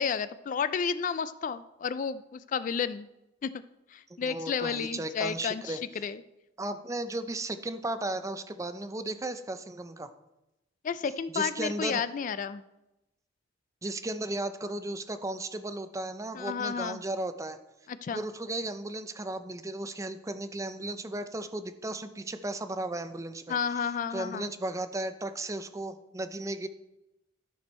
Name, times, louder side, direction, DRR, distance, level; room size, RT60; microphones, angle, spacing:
voice 1, 0.0-3.1 3.4-3.5 3.9-6.2 10.8-12.6 16.3-17.0 17.9-18.2 23.5-24.5, left 6 dB, 40° left, 14 dB, 0.3 m, -31 dB
voice 2, 4.2-5.8 6.6-10.1 11.3-12.0 13.8-17.6 18.1-23.6 24.1-26.7, right 2 dB, 15° right, 10 dB, 0.5 m, -35 dB
12.5 x 6.2 x 4.2 m, 0.94 s
head